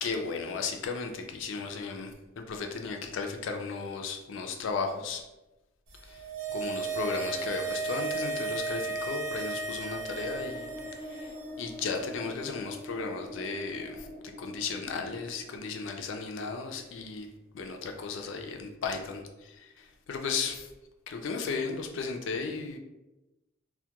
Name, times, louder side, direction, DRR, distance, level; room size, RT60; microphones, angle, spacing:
voice 1, 0.0-2.1 2.4-5.2 6.0-14.1 14.4-17.3 17.5-20.7 21.1-22.8, left 4 dB, 70° left, 4 dB, 0.3 m, -35 dB
sound 1, 6.0-11.4 11.7-11.8, right 4 dB, 90° right, 0.6 m, -34 dB
sound 2, 10.1-18.6 19.0-19.1 19.3-19.4, left 1 dB, 30° right, 0.4 m, -45 dB
2.2 x 2.1 x 2.8 m, 1.0 s
head